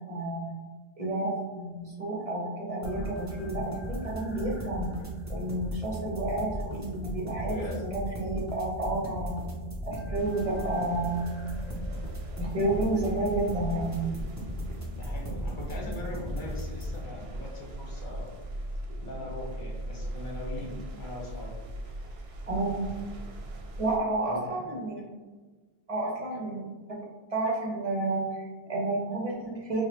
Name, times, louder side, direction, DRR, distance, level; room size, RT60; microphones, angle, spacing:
voice 1, 0.1-0.5 1.0-4.9 5.3-9.4 9.9-11.2 12.4-14.0 22.5-22.8 23.8-24.9 25.9-26.7 27.3-29.9, right 2 dB, 40° right, -2 dB, 0.8 m, -30 dB
sound 1, 2.8-17.0, equal, 20° right, 0.5 m, -37 dB
voice 2, 7.4-7.8 14.8-18.3 19.0-22.2 24.2-24.8, left 1 dB, 55° left, -2 dB, 0.8 m, -41 dB
sound 2, 10.2-24.0, right 1 dB, 75° right, 0.8 m, -39 dB
4.7 x 2.1 x 2.9 m, 1.3 s
omnidirectional pair, 1.0 m